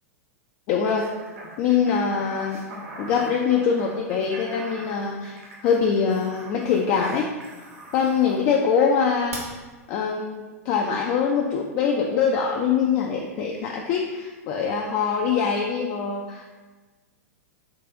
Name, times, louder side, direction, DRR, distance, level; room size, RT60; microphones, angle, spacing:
voice 1, 0.7-1.1 1.6-2.6 3.0-7.3 7.9-9.4 9.9-16.5, left 6 dB, 35° left, 1 dB, 0.3 m, -23 dB
sound 1, 0.8-8.5 9.3-9.4, right 2 dB, 60° right, 1.0 m, -42 dB
3.8 x 2.3 x 3.5 m, 1.3 s
figure-of-eight pair, 100°, 8 cm